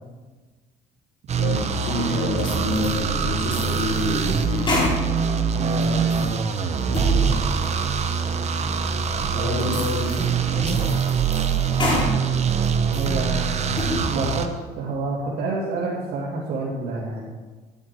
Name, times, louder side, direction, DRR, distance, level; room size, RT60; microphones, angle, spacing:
sound 1, 1.3-14.5, right 6 dB, 40° right, 0.9 m, -24 dB
voice 1, 1.4-4.7 9.3-10.9, left 2 dB, 85° left, -6 dB, 4.3 m, -28 dB
sound 2, 2.4-3.0 3.4-5.3 5.7-6.3 6.8-7.2 7.6-7.7 8.3-8.4 9.0-9.1 9.6-10.3 10.7-12.1 12.5-13.2 13.6-14.0, left 1 dB, 30° left, 3.3 m, -29 dB
voice 2, 5.5-6.4 6.8-7.4 9.3-9.6 12.9-13.6 14.1-14.5 14.8-17.3, right 2 dB, 75° right, -6 dB, 2.5 m, -29 dB
10.5 x 10.5 x 4.5 m, 1.3 s
cardioid pair, 110°, 17 cm